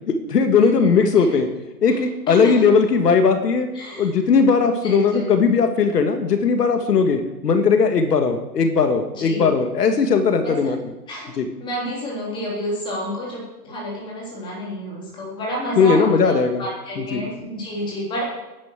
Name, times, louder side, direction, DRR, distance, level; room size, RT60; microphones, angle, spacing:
voice 1, 0.1-1.5 1.8-3.7 4.0-10.9 11.4-11.5 15.8-16.6 17.0-17.2, left 5 dB, 75° left, 6 dB, 2.0 m, -18 dB
voice 2, 0.6-1.3 1.9-2.0 2.3-2.6 3.7-4.1 4.8-5.3 9.1-9.5 10.4-10.6 11.1-11.3 11.6-18.2, equal, 10° left, -4 dB, 3.4 m, -29 dB
10.5 x 9.6 x 7.7 m, 1.0 s
hypercardioid pair, 170°, 47 cm